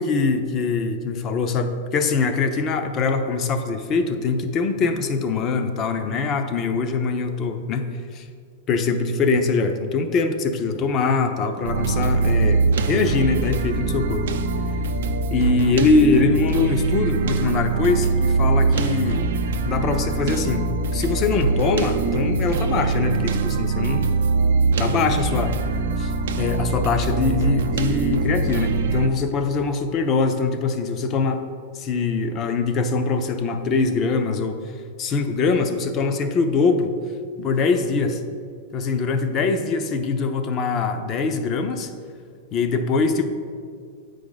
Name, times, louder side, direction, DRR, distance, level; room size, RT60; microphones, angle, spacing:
voice 1, 0.0-8.3 8.7-14.3 15.3-19.2 19.6-24.2 24.8-25.6 26.0-26.1 26.4-31.4 31.7-34.6 35.0-36.9 37.4-38.2 38.7-41.9 42.5-43.3, left 4 dB, 30° left, 8 dB, 0.6 m, -23 dB
sound 1, 11.6-29.1, right 4 dB, 80° right, 0.5 m, -23 dB
8.1 x 5.0 x 3.9 m, 2.2 s
supercardioid pair, 140°, 0 cm